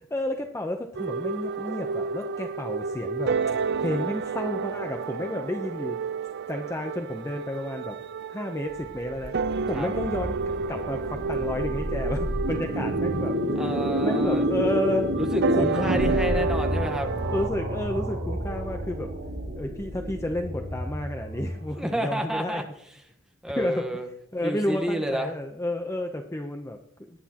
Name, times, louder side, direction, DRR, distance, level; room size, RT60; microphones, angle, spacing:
voice 1, 0.1-3.3 3.8-6.0 6.5-8.0 8.3-9.3 9.7-13.6 14.0-15.1 15.6-16.2 17.3-19.1 19.6-22.7 23.6-23.9 24.3-26.8, left 1 dB, 15° left, 4 dB, 0.8 m, -31 dB
sound 1, 1.0-17.5, right 4 dB, 55° right, 0.5 m, -31 dB
sound 2, 8.7-21.9, equal, 70° right, 1.9 m, -29 dB
voice 2, 13.5-14.5 15.2-17.1 21.8-22.6 23.4-24.1 24.4-25.3, equal, 5° right, 4 dB, 1.3 m, -30 dB
19.0 x 10.5 x 3.0 m, 0.70 s
head